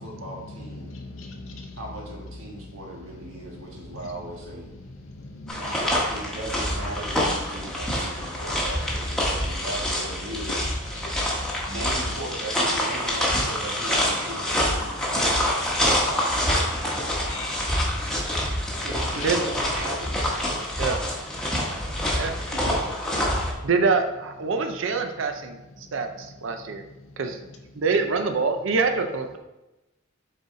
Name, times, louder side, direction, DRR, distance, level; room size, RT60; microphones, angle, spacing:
voice 1, 0.0-0.9 1.7-4.7 5.6-10.7 11.6-15.7 18.8-20.2 22.5-23.0, right 1 dB, 85° right, -2 dB, 1.6 m, -38 dB
voice 2, 0.8-1.8 5.2-5.6 10.6-10.7 11.0-11.6 17.2-17.5 22.0-22.1 22.5-22.7, left 3 dB, 80° left, 1 dB, 0.6 m, -40 dB
sound 1, 5.5-23.5, equal, 5° left, 1.0 m, -26 dB
voice 3, 23.6-25.6 25.9-26.8 27.2-27.4 27.8-29.4, right 4 dB, 70° right, 6 dB, 0.5 m, -25 dB
6.8 x 4.1 x 3.7 m, 1.0 s
head